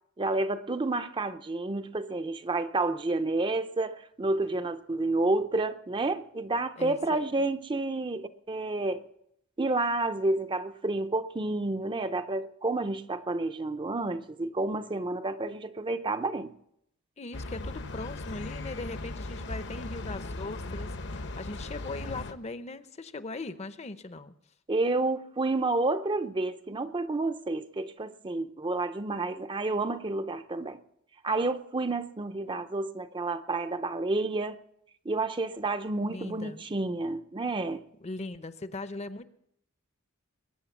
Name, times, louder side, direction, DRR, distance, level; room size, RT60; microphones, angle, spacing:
voice 1, 0.2-9.0 9.6-16.5 24.7-30.8 31.2-34.6 35.0-37.8, right 2 dB, 25° right, 0.6 m, -30 dB
voice 2, 6.8-7.3 17.2-24.3 36.0-36.6 38.0-39.2, left 2 dB, 30° left, 0.7 m, -40 dB
sound 1, 17.3-22.3, left 2 dB, 55° left, 1.0 m, -38 dB
21.5 x 8.8 x 7.2 m
head